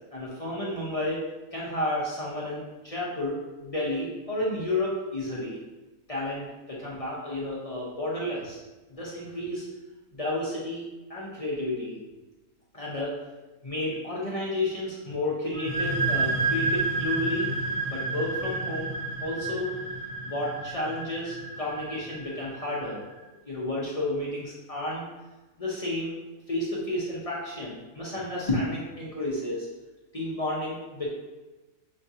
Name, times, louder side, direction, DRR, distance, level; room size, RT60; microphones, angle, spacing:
voice 1, 0.1-1.2 1.5-5.6 6.1-8.6 8.9-9.7 10.1-12.0 12.7-13.2 13.6-17.6 17.9-18.9 19.2-19.7 20.2-23.0 23.5-25.0 25.6-26.1 26.5-29.7 30.1-31.1, left 1 dB, 40° left, -6 dB, 0.5 m, -31 dB
sound 1, 15.5-23.0, right 3 dB, 45° right, 0.6 m, -30 dB
5.8 x 3.1 x 2.7 m, 1.1 s
omnidirectional pair, 1.6 m